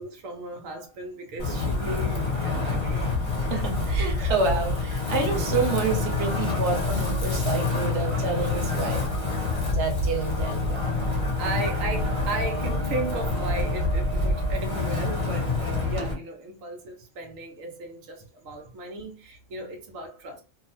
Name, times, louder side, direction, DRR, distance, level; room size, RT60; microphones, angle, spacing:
voice 1, 0.0-3.1 3.4-3.5 11.4-20.4, right 2 dB, 85° right, 1.1 m, -35 dB
Wind, 1.4-16.1, left 3 dB, 30° left, 1.0 m, -27 dB
voice 2, 3.5-9.0 9.7-11.0, right 4 dB, 60° right, 1.0 m, -28 dB
sound 1, 11.4-15.7, right 7 dB, 35° right, 0.8 m, -40 dB
2.7 x 2.0 x 2.8 m
omnidirectional pair, 1.3 m